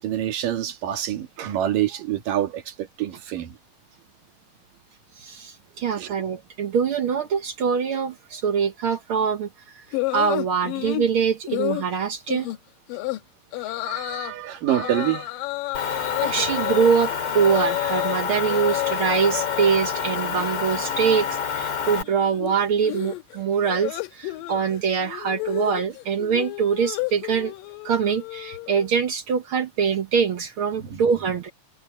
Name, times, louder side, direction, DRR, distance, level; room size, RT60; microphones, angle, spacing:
voice 1, 0.0-3.6 6.0-6.1 13.8-15.3 30.8-31.0, right 12 dB, 75° right, 3.5 m, -27 dB
voice 2, 5.2-9.5 10.1-12.5 15.9-27.5 27.8-31.5, right 6 dB, 60° right, 1.4 m, -24 dB
sound 1, 9.9-11.1 11.5-11.9 12.3-12.6 12.9-13.2 13.5-14.3 14.7-18.2 18.4-19.7 20.0-20.5 20.7-28.9, left 19 dB, 90° left, 2.7 m, -31 dB
Motor vehicle (road) / Engine, 15.7-22.0, left 7 dB, 55° left, 3.8 m, -28 dB
omnidirectional pair, 3.9 m